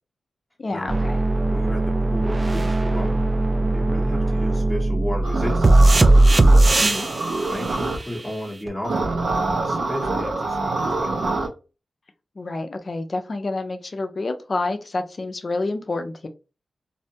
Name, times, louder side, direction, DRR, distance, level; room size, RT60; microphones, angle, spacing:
voice 1, 0.6-1.2 6.8-7.1 12.4-16.3, left 2 dB, 45° left, 7 dB, 0.5 m, -28 dB
sound 1, 0.9-7.1 8.7-8.8, right 2 dB, 35° right, 0.3 m, -18 dB
voice 2, 1.5-3.3 3.7-6.3 6.9-7.1 7.5-9.2 9.6-11.3, left 1 dB, 10° left, -5 dB, 0.8 m, -33 dB
sound 2, 5.2-8.0 8.8-11.5, right 3 dB, 75° right, 0.9 m, -25 dB
2.6 x 2.1 x 2.7 m, 0.30 s
cardioid pair, 80°, 0 cm